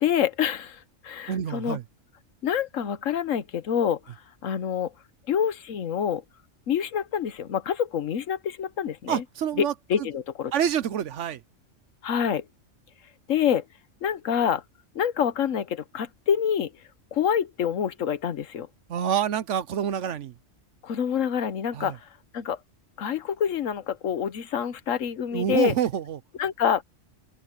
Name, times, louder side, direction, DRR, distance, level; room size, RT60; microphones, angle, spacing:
voice 1, 0.0-1.8 2.4-4.0 4.4-4.9 5.3-6.2 6.7-9.2 9.6-10.5 12.0-12.4 13.3-13.6 14.0-14.6 14.9-16.7 17.1-18.7 20.8-22.0 22.3-22.6 23.0-25.7 26.4-26.8, left 8 dB, 80° left, 1.3 m, -26 dB
voice 2, 1.3-1.8 9.1-10.1 10.5-11.4 18.9-20.3 21.7-22.0 25.3-26.2, right 9 dB, 70° right, 1.1 m, -27 dB
open air
omnidirectional pair, 1.3 m